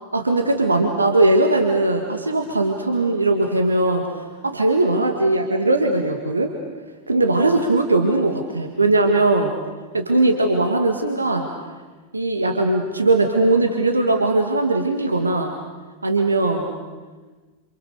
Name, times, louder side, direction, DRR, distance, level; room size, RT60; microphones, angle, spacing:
voice 1, 0.1-6.5 7.1-9.5 9.9-11.5 12.1-15.5 16.0-16.7, right 2 dB, 80° right, 4 dB, 2.0 m, -19 dB
28.5 x 28.0 x 6.9 m, 1.3 s
figure-of-eight pair, 90°, 0 cm